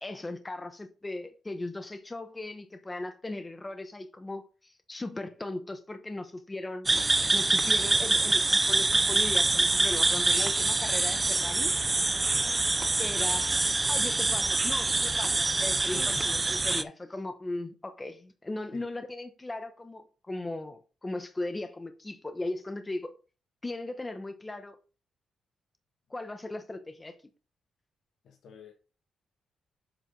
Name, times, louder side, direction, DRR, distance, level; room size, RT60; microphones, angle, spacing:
voice 1, 0.0-6.9 7.3-11.7 12.6-12.7 13.0-13.5 13.9-23.1 23.6-24.8 26.1-27.2, left 2 dB, 15° left, 1.0 m, -38 dB
sound 1, 6.9-16.8, right 3 dB, 20° right, 0.5 m, -25 dB
voice 2, 12.3-12.7 15.9-16.2 18.7-18.9 28.2-28.7, left 8 dB, 70° left, 1.7 m, -48 dB
7.6 x 5.0 x 3.9 m
cardioid pair, 145°, 0 cm